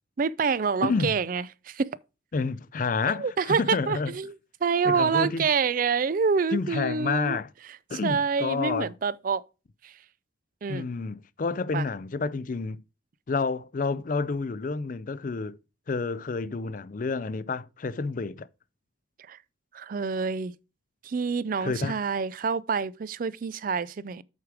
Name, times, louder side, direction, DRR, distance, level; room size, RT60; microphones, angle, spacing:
voice 1, 0.2-1.9 3.1-4.3 4.6-7.4 8.0-9.4 9.8-9.9 10.6-10.9 11.7-11.9 19.3-19.4 19.7-20.5 21.0-24.2, right 5 dB, 45° right, 0.4 m, -27 dB
voice 2, 0.8-1.2 2.3-4.1 4.8-5.5 6.5-7.5 7.9-8.9 10.7-12.8 13.3-15.6 15.9-18.5 21.6-22.0, left 4 dB, 40° left, 0.4 m, -29 dB
8.2 x 4.8 x 4.7 m
head